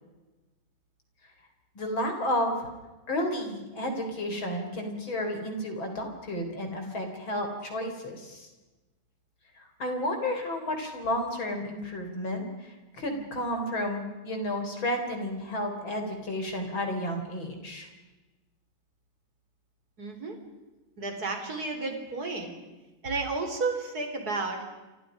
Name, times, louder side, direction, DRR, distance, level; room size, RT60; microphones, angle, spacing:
voice 1, 1.7-2.7 3.1-8.5 9.5-17.9, left 1 dB, 35° left, 4 dB, 4.6 m, -32 dB
voice 2, 20.0-20.4 21.0-22.5 23.0-24.6, right 3 dB, 25° right, 4 dB, 4.4 m, -32 dB
30.0 x 27.5 x 5.2 m, 1.1 s
omnidirectional pair, 4.0 m